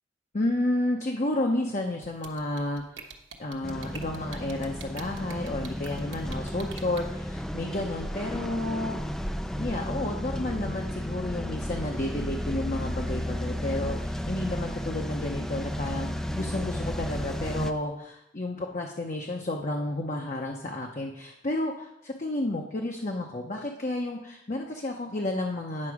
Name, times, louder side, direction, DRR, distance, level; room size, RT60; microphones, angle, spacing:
voice 1, 0.3-3.1 3.4-9.0 9.6-25.9, left 1 dB, 40° left, 1 dB, 0.7 m, -31 dB
sound 1, 2.0-7.0, right 5 dB, 90° right, 1.1 m, -44 dB
sound 2, 3.6-17.7, equal, 5° left, 0.4 m, -33 dB
9.7 x 6.0 x 4.8 m, 0.83 s
head